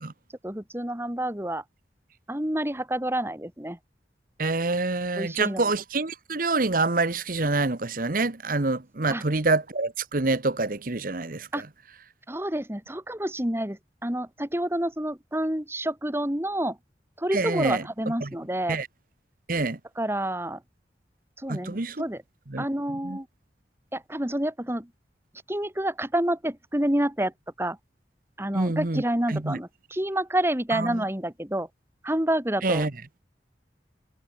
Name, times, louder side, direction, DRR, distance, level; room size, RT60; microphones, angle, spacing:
voice 1, 0.4-1.6 2.3-3.8 5.2-5.6 9.1-9.2 11.5-11.6 12.3-16.8 17.2-18.8 20.0-20.6 21.4-22.2 22.6-23.3 23.9-24.9 25.5-27.3 27.6-27.8 28.4-31.7 32.0-32.9, right 1 dB, 15° right, 2.6 m, -28 dB
voice 2, 4.4-11.7 17.3-17.8 18.2-18.3 18.7-18.9 19.5-19.8 21.5-22.0 22.5-22.7 23.0-23.2 28.5-29.0 29.3-29.6 30.7-31.0 32.6-32.9, right 3 dB, 50° right, 1.2 m, -26 dB
head